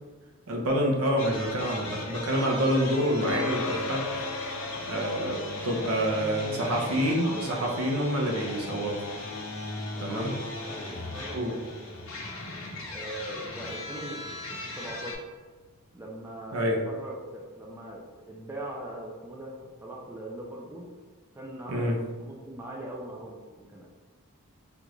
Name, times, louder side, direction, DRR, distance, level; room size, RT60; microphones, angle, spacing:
voice 1, 0.5-4.1 4.9-9.1 10.0-10.3 11.3-11.6 16.5-16.8 21.7-22.0, equal, 70° right, 0 dB, 0.7 m, -27 dB
sound 1, 1.2-15.2, left 2 dB, 60° left, 0.8 m, -38 dB
sound 2, 3.2-12.9, left 3 dB, 80° left, 0.4 m, -39 dB
voice 2, 6.5-6.9 7.2-7.6 10.0-12.0 12.9-14.2 14.8-15.2 15.9-16.6 16.9-20.9 21.3-23.9, right 1 dB, 10° right, -2 dB, 0.3 m, -41 dB
3.5 x 2.4 x 3.0 m, 1.4 s
head